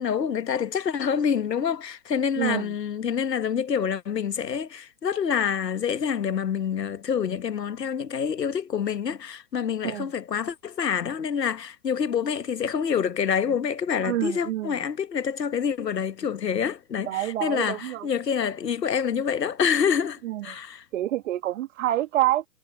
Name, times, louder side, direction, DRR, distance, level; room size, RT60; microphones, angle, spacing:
voice 1, 0.0-20.8, left 7 dB, 85° left, 1.2 m, -27 dB
voice 2, 2.4-2.7 9.8-10.1 14.0-14.8 17.1-18.1 20.2-20.5 20.9-22.5, right 14 dB, 50° right, 2.3 m, -27 dB
hypercardioid pair, 130°, 48 cm